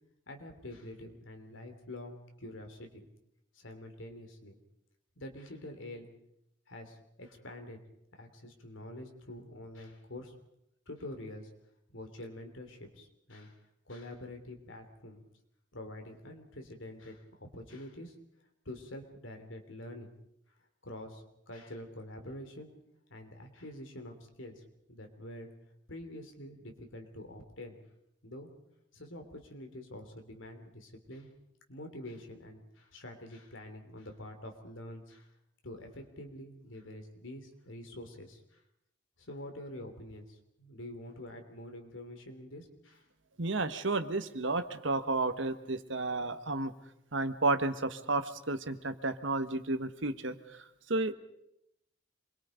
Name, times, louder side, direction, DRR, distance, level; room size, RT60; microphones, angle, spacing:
voice 1, 0.3-3.1 3.5-4.6 5.2-6.1 6.7-7.8 8.1-10.3 10.9-11.5 11.9-13.6 13.8-15.2 15.7-18.1 18.6-20.1 20.8-22.7 23.1-24.6 24.9-25.5 25.9-27.8 28.2-28.5 28.9-31.3 31.7-35.3 35.6-38.6 39.2-43.0, left 1 dB, 80° left, 5 dB, 3.2 m, -46 dB
voice 2, 43.4-46.7 47.1-51.1, right 2 dB, 70° right, 10 dB, 1.4 m, -32 dB
27.0 x 22.0 x 5.2 m, 0.80 s
head